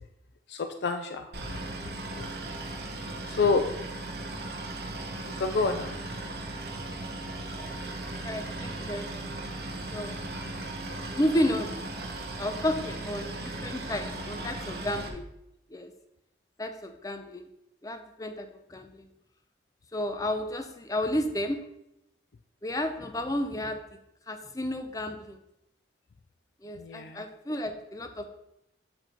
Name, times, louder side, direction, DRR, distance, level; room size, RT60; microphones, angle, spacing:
voice 1, 0.5-1.3 3.3-3.6 5.4-5.9 26.8-27.2, left 4 dB, 75° left, 7 dB, 0.4 m, -27 dB
Boat Water vehicle, 1.3-15.1, right 2 dB, 65° right, 0.9 m, -37 dB
voice 2, 8.2-9.3 9.9-10.2 11.2-11.7 12.4-15.3 15.7-15.9 16.6-17.4 17.8-19.0 19.9-21.6 22.6-23.8 24.3-25.4 26.6-28.3, left 1 dB, 20° left, 7 dB, 0.5 m, -32 dB
8.2 x 3.0 x 5.1 m, 0.84 s
head